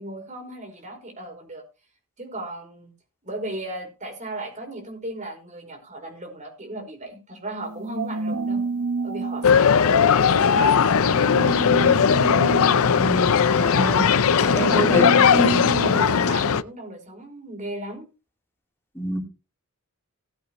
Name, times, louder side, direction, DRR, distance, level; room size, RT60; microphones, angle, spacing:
voice 1, 0.0-1.6 2.2-2.9 3.2-8.6 9.0-10.0 10.3-11.3 14.4-18.1, right 1 dB, 35° right, 4 dB, 5.1 m, -36 dB
sound 1, 7.6-16.2, right 4 dB, 70° right, 1.1 m, -30 dB
sound 2, 9.4-16.6, left 6 dB, 65° left, 0.6 m, -18 dB
voice 2, 13.0-14.1 14.5-15.2 19.0-19.2, equal, 10° left, 0 dB, 3.5 m, -27 dB
18.5 x 8.3 x 3.1 m, 0.29 s
head